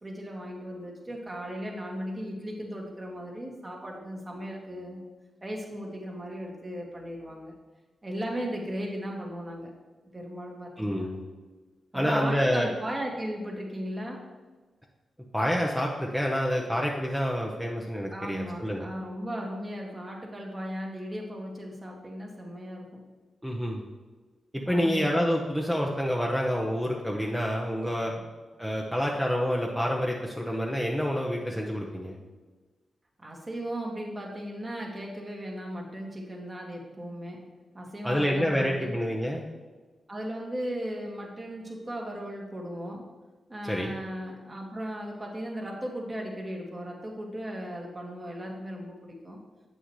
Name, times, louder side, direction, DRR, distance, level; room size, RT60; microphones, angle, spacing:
voice 1, 0.0-5.1 5.4-7.6 8.0-9.7 10.1-11.1 11.9-14.3 18.1-23.1 24.6-25.2 33.2-38.9 40.1-43.1 43.5-49.4, equal, 30° right, 0 dB, 1.9 m, -36 dB
voice 2, 10.8-11.2 11.9-12.7 15.3-18.8 23.4-23.8 24.5-28.1 28.6-32.2 38.0-39.5 43.7-43.9, equal, ahead, -1 dB, 0.9 m, -28 dB
7.9 x 6.3 x 3.2 m, 1.3 s
supercardioid pair, 40°, 0 cm